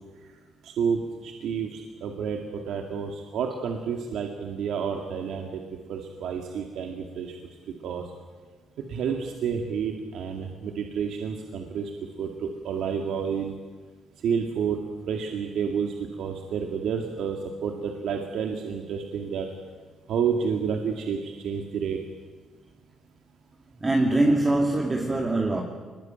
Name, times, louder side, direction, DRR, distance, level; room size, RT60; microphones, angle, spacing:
voice 1, 0.6-5.6 5.9-7.4 7.8-8.1 8.9-11.9 12.2-13.5 14.2-14.8 15.1-19.5 20.1-22.0, right 6 dB, 75° right, 3 dB, 2.2 m, -30 dB
voice 2, 23.8-25.6, right 2 dB, 25° right, 0 dB, 2.7 m, -23 dB
22.5 x 21.0 x 9.2 m, 1.5 s
cardioid pair, 90°, 0 cm